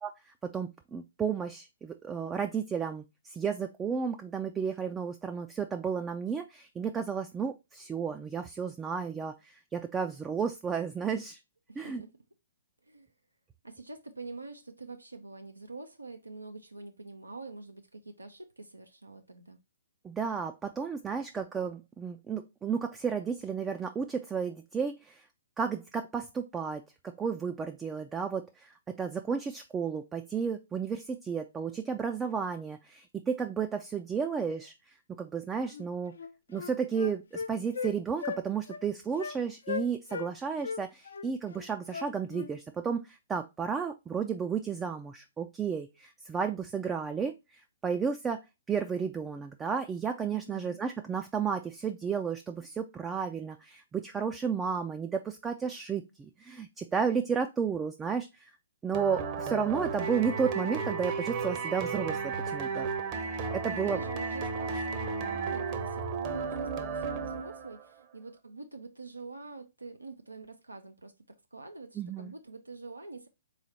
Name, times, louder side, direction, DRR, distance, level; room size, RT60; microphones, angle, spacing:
voice 1, 0.0-11.4 11.8-12.0 20.0-25.2 25.6-26.8 27.2-34.7 35.2-36.1 36.5-58.5 58.8-62.9 63.2-64.0 72.0-72.3, right 6 dB, 15° right, 0.4 m, -33 dB
voice 2, 11.7-12.1 12.8-13.1 13.6-19.6 50.3-50.8 63.7-71.1 71.5-73.3, right 3 dB, 85° right, 0.6 m, -45 dB
Wind instrument woodwind instrument, 35.7-35.9 36.2-37.9 38.2-38.4 38.7-38.8 39.2-39.4 39.7-40.3 40.6-42.5, left 6 dB, 65° left, 0.5 m, -37 dB
sound 1, 58.9-67.9, right 5 dB, 35° right, 0.8 m, -33 dB
3.9 x 3.1 x 4.0 m
figure-of-eight pair, 120°, 0 cm